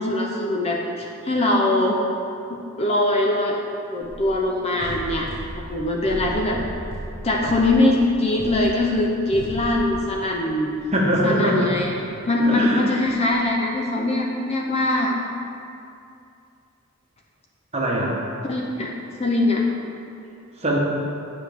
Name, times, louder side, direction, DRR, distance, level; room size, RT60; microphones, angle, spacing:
voice 1, 0.0-2.0 2.5-3.6 3.9-5.3 5.7-6.6 7.2-10.7 11.2-11.9 12.3-15.2 18.4-18.9 19.2-19.6, left 1 dB, 25° left, 0 dB, 0.6 m, -22 dB
sound 1, 4.0-4.4 4.8-10.4 10.7-13.6, equal, 45° right, 1.4 m, -36 dB
voice 2, 10.9-11.7 12.4-12.8 17.7-18.2 20.6-20.8, right 1 dB, 30° right, -3 dB, 1.1 m, -21 dB
9.9 x 5.9 x 3.5 m, 2.6 s
head